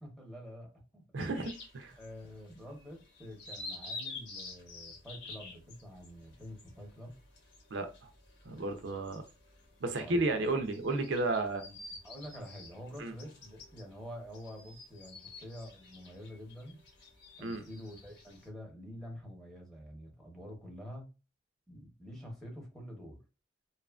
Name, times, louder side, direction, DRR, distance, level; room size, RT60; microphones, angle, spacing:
voice 1, 0.0-1.0 2.0-7.2 10.0-10.6 11.5-11.8 12.0-16.8 17.4-21.1 21.7-23.2, equal, ahead, 0.8 m, -47 dB
voice 2, 1.1-2.0 7.7-8.1 8.5-9.2 9.8-11.6 13.0-13.1 17.4-17.6, right 2 dB, 70° right, 0.5 m, -33 dB
sound 1, 1.2-18.5, left 3 dB, 70° left, 1.0 m, -50 dB
2.7 x 2.4 x 2.2 m
head